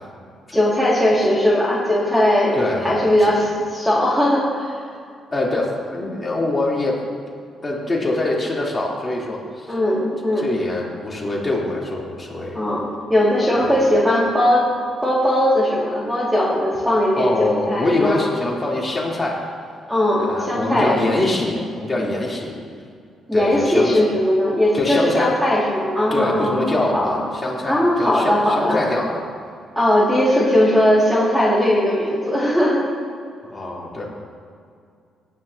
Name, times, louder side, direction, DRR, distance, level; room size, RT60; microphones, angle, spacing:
voice 1, 0.5-2.6 2.8-4.8 9.7-10.5 12.5-14.7 15.0-18.3 19.9-21.0 23.3-27.2 27.7-28.8 29.8-32.9, left 1 dB, 5° right, -5 dB, 2.3 m, -19 dB
voice 2, 2.5-3.0 3.3-3.4 5.3-7.0 7.6-9.7 10.4-12.6 13.6-13.8 17.1-19.5 20.2-22.5 23.3-24.0 24.7-25.3 26.1-29.2 33.4-34.1, left 2 dB, 25° left, -4 dB, 3.3 m, -24 dB
17.5 x 10.5 x 2.8 m, 2.3 s
cardioid pair, 90°, 0 cm